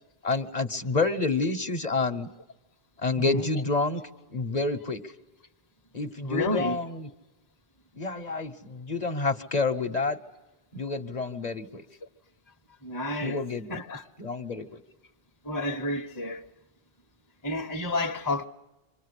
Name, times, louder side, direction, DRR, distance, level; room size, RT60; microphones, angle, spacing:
voice 1, 0.2-2.3 3.0-4.0 4.3-5.0 5.9-7.1 8.0-10.2 10.7-11.8 13.2-13.8 14.2-14.8, left 3 dB, 45° left, 1.1 m, -28 dB
voice 2, 3.2-3.5 6.2-6.8 12.8-13.4 13.7-14.1 15.4-16.5 17.4-18.4, left 1 dB, 20° left, 0.9 m, -30 dB
27.0 x 24.5 x 8.3 m
omnidirectional pair, 1.0 m